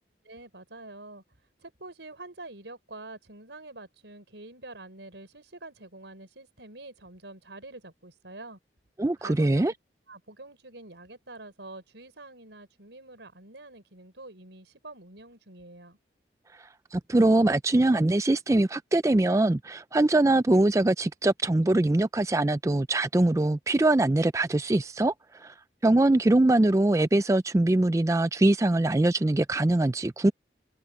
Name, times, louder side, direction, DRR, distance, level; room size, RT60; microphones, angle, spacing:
voice 1, 0.2-1.2 1.6-8.6 9.2-9.7 10.1-16.0, right 2 dB, 85° right, 5.1 m, -46 dB
voice 2, 9.0-9.7 16.9-25.1 25.4-25.5 25.8-30.3, right 2 dB, 15° right, 0.3 m, -22 dB
open air
head